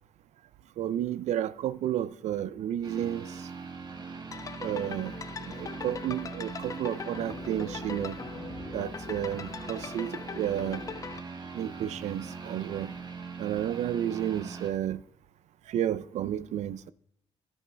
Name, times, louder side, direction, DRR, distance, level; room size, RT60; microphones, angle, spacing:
voice 1, 0.8-3.5 4.6-8.2 8.7-10.8 11.5-12.9 13.4-15.0 15.7-16.9, right 11 dB, 70° right, 0.5 m, -32 dB
sound 1, 2.8-14.7, right 5 dB, 35° right, 1.5 m, -41 dB
sound 2, 4.3-11.2, left 6 dB, 30° left, 0.3 m, -41 dB
13.0 x 9.1 x 3.4 m
cardioid pair, 130°, 12 cm